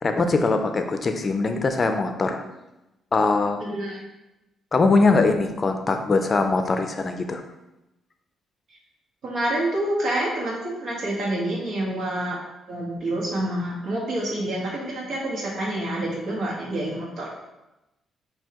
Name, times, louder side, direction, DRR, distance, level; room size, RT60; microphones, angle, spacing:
voice 1, 0.0-2.4 3.1-3.6 4.7-7.4, left 3 dB, 35° left, 6 dB, 0.5 m, -22 dB
voice 2, 3.6-4.0 9.2-12.4 12.7-17.3, right 1 dB, 65° right, -4 dB, 1.5 m, -27 dB
5.4 x 2.7 x 3.0 m, 0.95 s
cardioid pair, 90°, 0 cm